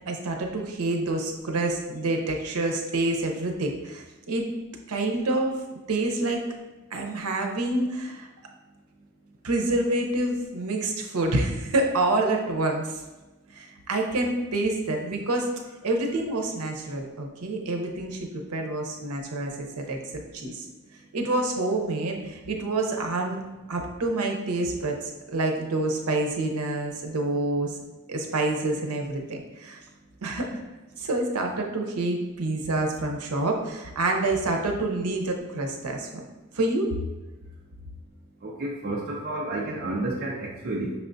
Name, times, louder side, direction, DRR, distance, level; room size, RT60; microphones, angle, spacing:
voice 1, 0.1-4.5 4.9-5.5 5.9-6.4 6.9-8.3 9.4-12.9 13.5-15.5 15.8-20.7 21.1-27.7 28.1-29.8 30.2-30.5 31.0-36.1 36.5-36.9, right 2 dB, 85° right, 2 dB, 0.7 m, -27 dB
voice 2, 38.4-40.9, right 2 dB, 45° right, -3 dB, 0.5 m, -30 dB
5.8 x 3.4 x 2.6 m, 1.1 s
head